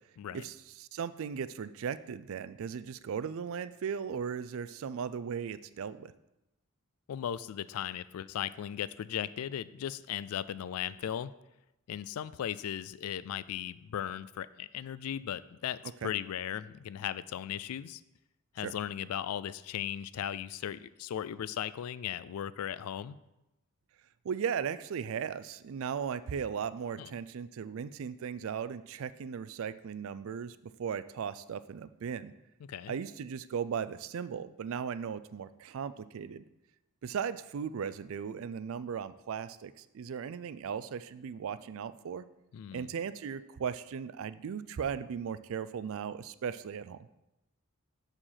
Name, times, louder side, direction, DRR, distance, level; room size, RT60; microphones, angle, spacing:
voice 1, 0.3-6.1 16.0-16.1 18.6-18.7 24.2-32.3 32.9-36.4 37.0-42.3 42.7-47.0, right 7 dB, 65° right, 15 dB, 0.4 m, -37 dB
voice 2, 7.1-11.3 11.9-18.0 18.5-23.2 27.0-27.1 32.6-32.9 42.5-42.9, left 10 dB, 80° left, 18 dB, 0.3 m, -37 dB
6.5 x 4.9 x 5.6 m, 0.94 s
head